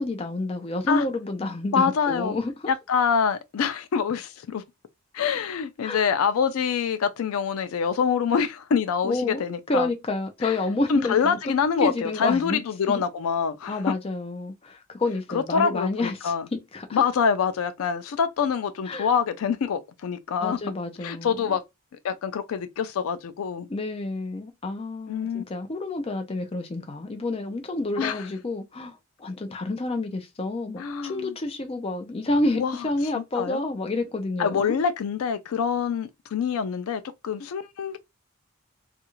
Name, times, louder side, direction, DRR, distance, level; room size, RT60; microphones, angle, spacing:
voice 1, 0.0-2.5 5.8-6.1 9.0-9.4 9.7-11.4 11.8-13.0 13.7-16.3 16.7-17.0 18.9-19.1 20.4-21.6 23.7-34.7, left 2 dB, 25° left, 0.5 m, -29 dB
voice 2, 1.7-2.4 2.7-4.6 5.1-9.9 10.4-10.6 10.9-13.9 15.3-16.5 16.9-20.6 21.0-21.6 22.0-23.7 25.1-25.4 28.0-28.2 30.8-31.3 32.6-32.7 33.4-33.6 34.4-38.0, left 6 dB, 85° left, 0.4 m, -25 dB
2.4 x 2.3 x 2.9 m
head